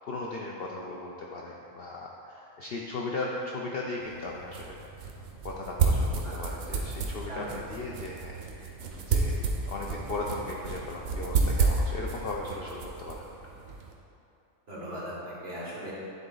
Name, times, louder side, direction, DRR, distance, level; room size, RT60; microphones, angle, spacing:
voice 1, 0.1-5.1 5.4-8.8 9.1-13.2, left 2 dB, 65° left, -1 dB, 0.6 m, -37 dB
sound 1, 4.0-13.9, right 4 dB, 80° right, 1.2 m, -31 dB
voice 2, 14.7-15.9, right 1 dB, 45° right, -8 dB, 1.9 m, -38 dB
9.2 x 4.0 x 3.8 m, 2.8 s
omnidirectional pair, 1.4 m